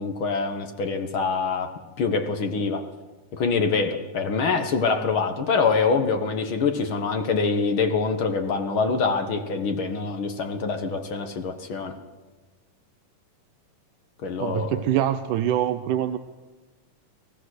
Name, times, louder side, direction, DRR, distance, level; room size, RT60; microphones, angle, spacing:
voice 1, 0.0-2.9 3.3-12.0 14.2-14.8, left 4 dB, 50° left, 6 dB, 1.7 m, -25 dB
voice 2, 14.4-16.2, right 11 dB, 85° right, 9 dB, 2.3 m, -24 dB
24.5 x 17.5 x 6.4 m, 1.2 s
omnidirectional pair, 3.6 m